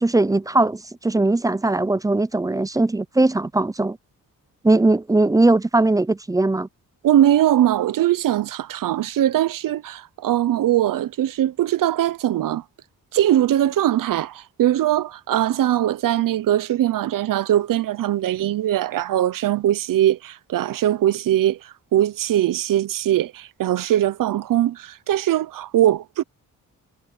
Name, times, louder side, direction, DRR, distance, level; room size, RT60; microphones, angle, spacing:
voice 1, 0.0-4.0 4.6-6.7, right 2 dB, 10° right, 0.4 m, -19 dB
voice 2, 7.0-12.6 13.1-26.2, right 12 dB, 85° right, 0.7 m, -21 dB
wide cardioid pair, 115°, 32 cm